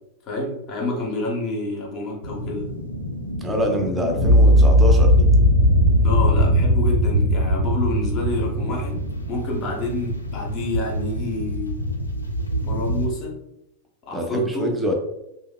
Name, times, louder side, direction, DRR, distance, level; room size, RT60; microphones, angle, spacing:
voice 1, 0.3-2.7 6.0-11.8 12.6-13.4 14.1-14.7, left 2 dB, 35° left, -1 dB, 0.7 m, -28 dB
sound 1, 2.2-13.1, right 1 dB, 85° left, 0.3 m, -29 dB
voice 2, 3.4-5.3 14.1-14.9, equal, 10° right, 1 dB, 0.5 m, -25 dB
sound 2, 4.1-10.2, equal, 85° right, 0.8 m, -17 dB
2.7 x 2.0 x 2.2 m, 0.86 s
figure-of-eight pair, 90°, 0 cm